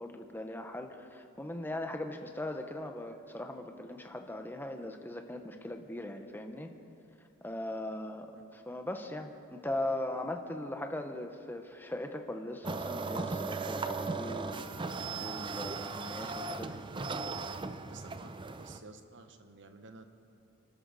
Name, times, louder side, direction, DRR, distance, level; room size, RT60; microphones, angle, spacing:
voice 1, 0.0-6.7 7.4-8.3 8.5-14.6 15.2-16.8, left 1 dB, 10° left, 5 dB, 0.9 m, -39 dB
sound 1, 12.6-18.8, right 4 dB, 20° right, 0.5 m, -37 dB
voice 2, 16.6-17.4 17.7-18.3 18.6-20.0, right 3 dB, 55° right, 7 dB, 1.1 m, -52 dB
25.5 x 12.5 x 4.1 m, 2.5 s
head